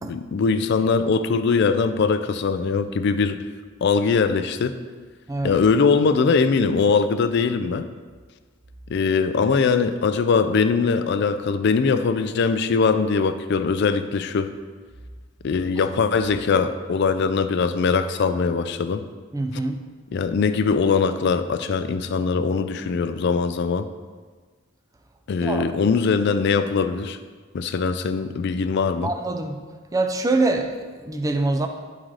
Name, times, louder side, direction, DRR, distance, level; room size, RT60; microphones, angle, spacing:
voice 1, 0.1-3.4 3.8-4.8 5.4-7.8 8.9-14.5 15.4-19.1 20.1-23.9 25.3-27.2 27.5-29.1, left 5 dB, 55° left, 11 dB, 0.4 m, -21 dB
voice 2, 19.3-19.8 25.4-25.7 29.0-29.6 29.9-31.7, right 2 dB, 15° right, 6 dB, 0.4 m, -24 dB
10.0 x 3.7 x 3.2 m, 1.4 s
head